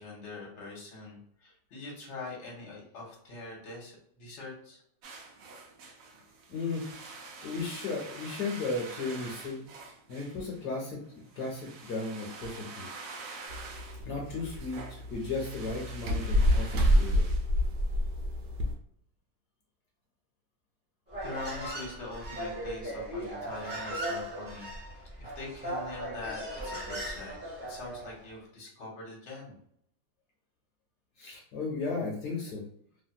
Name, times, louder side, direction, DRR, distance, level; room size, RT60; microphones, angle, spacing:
voice 1, 0.0-4.8 21.2-24.7 25.2-27.4 27.7-29.6, left 3 dB, 50° left, -3 dB, 1.2 m, -43 dB
sound 1, 5.0-18.0, right 4 dB, 70° right, 0.8 m, -47 dB
voice 2, 6.5-6.9 7.1-12.9 13.2-13.4 14.0-17.2 31.2-32.6, left 3 dB, 75° left, -2 dB, 1.2 m, -35 dB
sound 2, 13.5-18.7, equal, 85° right, 1.3 m, -28 dB
Human voice, 21.1-28.2, right 1 dB, 10° right, 0.7 m, -38 dB
3.0 x 2.7 x 2.2 m, 0.67 s
omnidirectional pair, 1.8 m